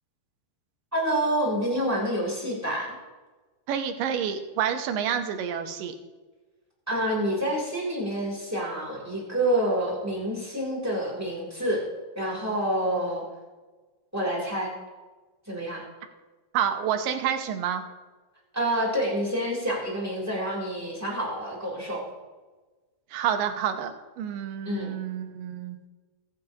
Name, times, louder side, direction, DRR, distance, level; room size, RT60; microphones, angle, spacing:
voice 1, 0.9-2.9 6.9-11.8 12.1-13.2 14.1-14.7 15.5-15.8 18.5-22.0 24.6-24.9, right 1 dB, 5° right, -4 dB, 2.8 m, -28 dB
voice 2, 3.7-5.9 16.5-17.8 23.1-25.8, right 8 dB, 75° right, 6 dB, 2.5 m, -28 dB
22.5 x 9.3 x 2.9 m, 1.3 s
omnidirectional pair, 4.2 m